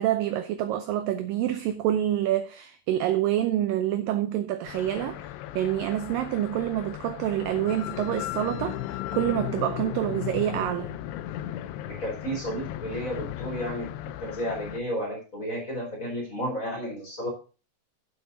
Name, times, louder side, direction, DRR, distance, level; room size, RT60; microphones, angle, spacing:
voice 1, 0.0-5.3 5.6-11.0, right 12 dB, 80° right, 2.0 m, -27 dB
sound 1, 4.6-14.8, left 13 dB, 80° left, 2.7 m, -36 dB
voice 2, 11.8-13.9 14.2-17.3, equal, 20° left, 2.9 m, -32 dB
9.7 x 7.7 x 3.8 m
omnidirectional pair, 4.7 m